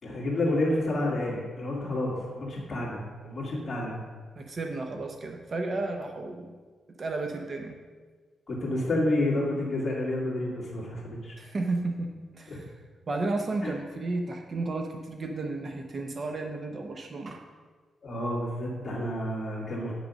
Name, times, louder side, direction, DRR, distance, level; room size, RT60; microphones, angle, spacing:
voice 1, 0.0-4.0 8.5-11.4 12.5-12.6 13.6-13.7 18.0-19.9, left 1 dB, 30° left, -4 dB, 2.2 m, -29 dB
voice 2, 4.4-6.5 7.0-7.8 11.4-12.7 13.1-17.4, right 2 dB, 35° right, 3 dB, 0.6 m, -33 dB
8.5 x 6.1 x 5.2 m, 1.5 s
wide cardioid pair, 165°, 0 cm